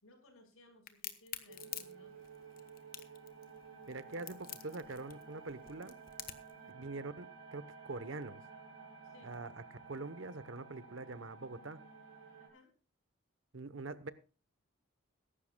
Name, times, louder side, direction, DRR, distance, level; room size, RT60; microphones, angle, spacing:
voice 1, 0.0-2.2 6.4-6.9 9.0-9.4 12.4-12.7, left 1 dB, 85° left, 6 dB, 4.8 m, -62 dB
Crack, 0.9-6.6, left 11 dB, 40° left, 1.2 m, -46 dB
sound 1, 1.5-12.5, right 5 dB, 90° right, 4.9 m, -54 dB
voice 2, 3.9-5.9 6.7-8.4 9.2-11.8 13.5-14.1, right 3 dB, 65° right, 14 dB, 1.0 m, -44 dB
22.0 x 11.5 x 2.3 m, 0.34 s
head